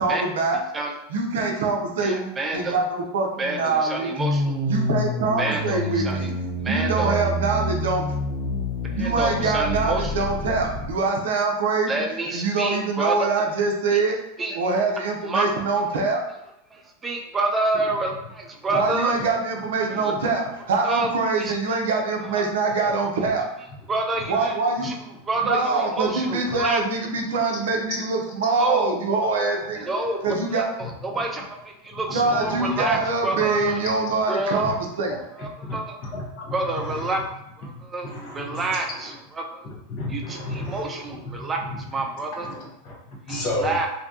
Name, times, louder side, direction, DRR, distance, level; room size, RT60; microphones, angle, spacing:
voice 1, 0.0-0.6 1.1-4.1 4.7-6.3 6.6-8.1 8.9-11.9 12.3-14.2 14.5-16.2 18.7-23.4 24.3-25.0 25.4-29.9 30.2-30.7 32.1-35.2, right 3 dB, 75° right, 1 dB, 0.5 m, -24 dB
voice 2, 2.0-2.7 3.4-4.6 5.4-6.3 6.6-7.2 9.0-10.3 11.9-13.3 13.9-14.0 14.4-14.6 15.3-15.4 16.7-19.1 19.9-20.1 20.8-21.1 21.4-21.5 23.9-24.5 24.8-24.9 25.3-26.8 28.5-29.0 29.7-30.2 30.5-33.8 34.3-34.6 35.4-36.0 36.5-37.2 37.6-39.7 40.1-41.6 41.9-42.5 43.3-43.9, right 3 dB, 20° right, 2 dB, 0.4 m, -28 dB
sound 1, 4.2-10.9, left 1 dB, 30° left, 1.1 m, -27 dB
voice 3, 24.1-24.5 24.8-24.9 25.4-25.9 26.2-26.6 30.8-31.2 31.9-33.0 34.6-34.7 35.6-35.8 36.0-37.2 37.6-37.7 38.0-39.2 39.6-40.8 41.3-41.8 42.4-43.8, left 2 dB, 50° left, -2 dB, 0.8 m, -34 dB
2.6 x 2.2 x 2.6 m, 0.84 s
hypercardioid pair, 95°, 0 cm